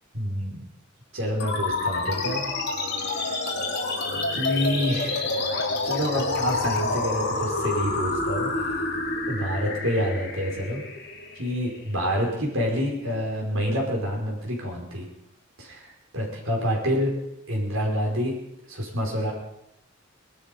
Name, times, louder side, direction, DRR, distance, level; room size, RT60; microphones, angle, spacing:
voice 1, 0.1-0.6 1.1-2.5 3.1-3.4 4.3-5.5 5.8-8.8 9.3-10.8 11.4-15.1 15.6-17.1 17.5-18.4 18.7-19.3, equal, 80° right, -1 dB, 4.9 m, -27 dB
sound 1, 1.4-12.3, left 3 dB, 55° left, 3.3 m, -28 dB
20.0 x 12.5 x 5.4 m, 0.81 s
head